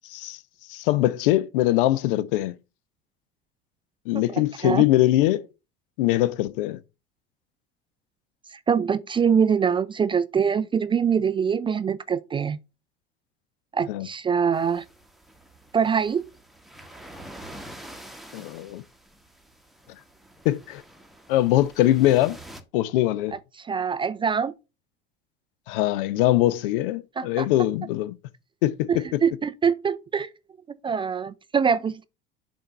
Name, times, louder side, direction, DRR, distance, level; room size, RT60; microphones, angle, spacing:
voice 1, 0.7-2.5 4.1-5.5 6.0-6.8 13.9-14.1 18.3-18.8 20.4-20.8 21.3-22.4 22.7-23.3 25.7-28.2 28.6-29.0, left 15 dB, 65° left, 0.5 m, -22 dB
voice 2, 4.3-4.8 8.5-12.6 13.7-14.8 15.7-16.2 23.6-24.5 27.2-27.5 28.9-30.3 30.8-32.0, right 6 dB, 20° right, 0.3 m, -24 dB
sound 1, 14.5-22.6, right 1 dB, ahead, 1.0 m, -46 dB
6.9 x 2.7 x 5.5 m
hypercardioid pair, 70°, 30 cm